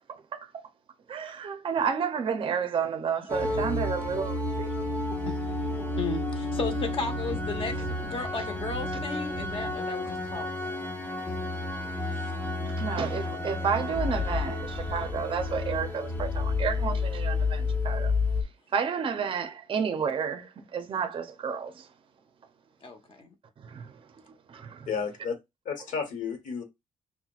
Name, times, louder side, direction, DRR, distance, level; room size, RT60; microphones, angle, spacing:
voice 1, 0.1-0.5 1.1-5.0 12.7-18.1 18.7-21.9 23.6-24.0 24.5-24.9, right 6 dB, 40° right, 0.5 m, -31 dB
sound 1, 3.3-18.4, left 2 dB, 15° left, 0.8 m, -30 dB
voice 2, 3.4-3.8 5.3-5.4 6.0-10.5 22.8-23.3, left 3 dB, 45° left, 0.9 m, -35 dB
voice 3, 24.9-25.3 25.7-26.6, left 6 dB, 85° left, 1.1 m, -32 dB
5.6 x 2.2 x 2.4 m
cardioid pair, 130°, 13 cm